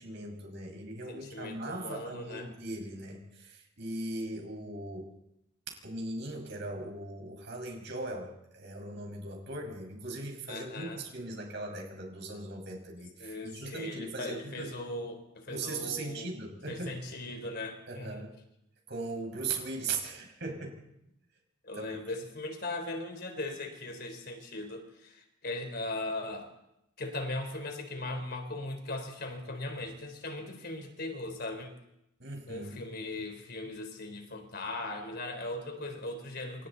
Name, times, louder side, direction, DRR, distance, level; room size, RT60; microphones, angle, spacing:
voice 1, 0.0-5.1 5.7-14.7 15.5-17.0 17.9-18.3 18.9-20.8 21.7-22.2 32.2-32.9, right 2 dB, 60° right, 2 dB, 5.7 m, -39 dB
voice 2, 1.1-2.5 10.5-11.0 13.2-16.4 16.7-18.2 21.6-26.5 27.0-31.7 32.5-36.7, left 2 dB, 50° left, 5 dB, 4.1 m, -39 dB
28.0 x 27.5 x 4.1 m, 0.84 s
head